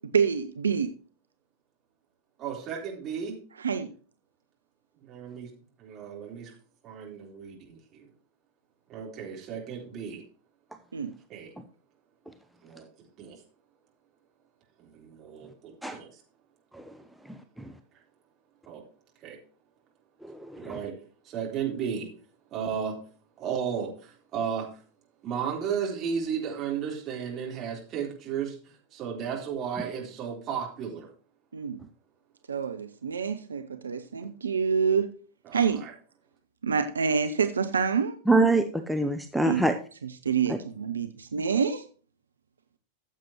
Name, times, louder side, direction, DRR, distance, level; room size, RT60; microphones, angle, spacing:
voice 1, 0.1-0.9 3.6-3.9 10.9-11.1 31.5-31.8 32.5-35.1 35.5-35.8 36.6-38.2 39.4-39.6 40.2-41.8, right 6 dB, 70° right, 9 dB, 0.6 m, -27 dB
voice 2, 2.4-3.4 5.1-5.5 5.8-6.5 6.8-8.0 8.9-10.2 11.3-11.5 12.6-12.8 13.2-13.4 14.8-16.1 18.7-18.8 19.2-19.4 20.6-20.9 21.2-22.1 22.5-23.0 23.4-24.7 25.2-31.1 35.4-35.9, right 7 dB, 30° right, -1 dB, 3.7 m, -34 dB
voice 3, 20.2-20.8 38.3-39.7 40.5-40.6, right 2 dB, ahead, 5 dB, 0.6 m, -25 dB
14.5 x 7.5 x 2.9 m, 0.41 s
figure-of-eight pair, 90°, 0 cm